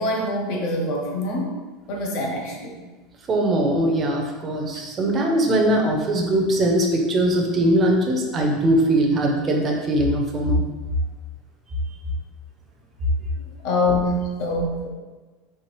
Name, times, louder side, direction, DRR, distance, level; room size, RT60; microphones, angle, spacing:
voice 1, 0.0-1.5 1.9-2.8 4.7-4.8 13.6-14.9, left 1 dB, 50° left, 0 dB, 0.9 m, -24 dB
voice 2, 3.3-10.6, right 1 dB, 20° right, 0 dB, 0.6 m, -21 dB
4.5 x 3.4 x 3.2 m, 1.3 s
supercardioid pair, 165°, 0 cm